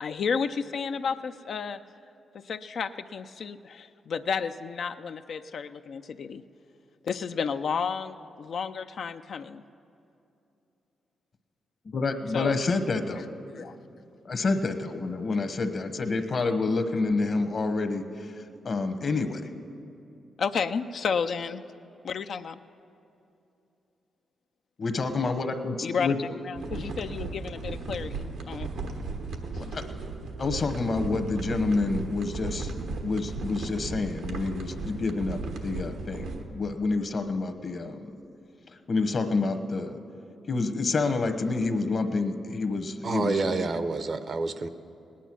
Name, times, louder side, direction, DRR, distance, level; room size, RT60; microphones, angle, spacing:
voice 1, 0.0-1.8 2.3-6.4 7.0-9.6 12.3-12.6 13.5-13.8 20.4-21.6 22.0-22.6 25.8-26.1 26.4-28.7, left 6 dB, 65° left, 8 dB, 0.4 m, -32 dB
voice 2, 11.8-13.2 14.2-18.3 18.6-19.4 24.8-26.4 26.7-26.8 29.6-29.8 30.4-32.7 33.0-38.1 38.9-40.0 40.5-43.7, left 3 dB, 50° left, 8 dB, 1.1 m, -28 dB
sound 1, 26.5-36.4, right 3 dB, 85° right, 1.2 m, -35 dB
voice 3, 43.0-44.7, right 3 dB, 55° right, 11 dB, 0.7 m, -28 dB
18.0 x 10.0 x 6.1 m, 2.8 s
cardioid pair, 65°, 0 cm